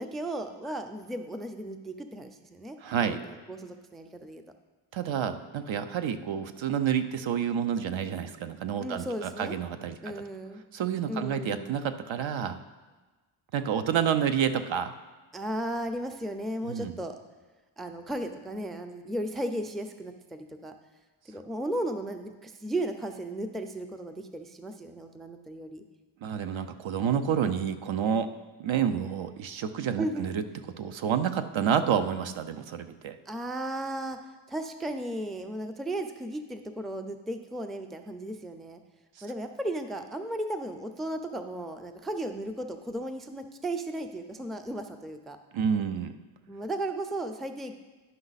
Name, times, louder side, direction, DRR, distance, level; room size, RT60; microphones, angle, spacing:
voice 1, 0.0-2.8 3.1-4.4 8.8-9.6 10.0-10.6 11.1-11.7 15.3-17.2 17.8-20.7 21.3-25.8 30.0-30.4 33.3-34.2 34.5-38.8 39.2-45.4 46.5-47.7, right 1 dB, ahead, 7 dB, 0.4 m, -35 dB
voice 2, 2.8-3.2 4.9-10.1 10.7-12.6 13.5-14.9 16.6-16.9 26.2-28.3 28.6-30.4 30.8-33.2 39.2-39.3 45.5-46.1, right 8 dB, 70° right, 9 dB, 0.6 m, -29 dB
11.0 x 5.4 x 4.0 m, 1.3 s
wide cardioid pair, 105°, 49 cm